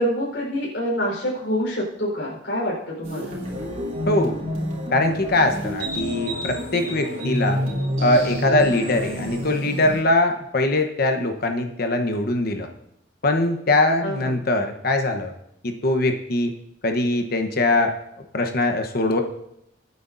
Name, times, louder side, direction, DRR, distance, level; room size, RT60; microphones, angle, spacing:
voice 1, 0.0-3.4 14.0-14.4, equal, 80° left, -4 dB, 4.3 m, -26 dB
sound 1, 3.0-10.0, equal, 35° right, 3.4 m, -28 dB
voice 2, 4.1-4.4 4.9-7.6 8.0-12.7 13.2-15.3 15.6-16.5 16.8-17.9 18.3-19.2, left 2 dB, 55° left, 5 dB, 1.0 m, -22 dB
23.0 x 9.5 x 2.7 m, 0.79 s
head